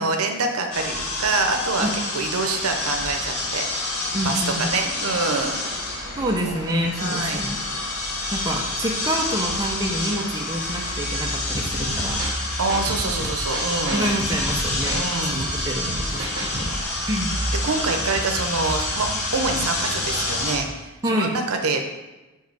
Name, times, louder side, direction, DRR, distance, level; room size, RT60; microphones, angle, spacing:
voice 1, 0.0-1.9 2.1-5.6 5.9-6.0 6.4-6.6 7.0-7.4 12.6-14.1 14.9-15.4 17.6-21.8, right 3 dB, 75° right, 5 dB, 0.7 m, -26 dB
sound 1, 0.7-20.6, left 2 dB, 80° left, 1.3 m, -28 dB
voice 2, 4.1-4.8 6.2-7.6 8.3-12.6 13.9-15.0 15.3-16.8 17.1-17.3 21.0-21.3, equal, 15° right, 0 dB, 0.6 m, -27 dB
sound 2, 11.5-16.9, right 1 dB, 55° right, 1.0 m, -32 dB
5.3 x 4.6 x 4.7 m, 1.1 s
head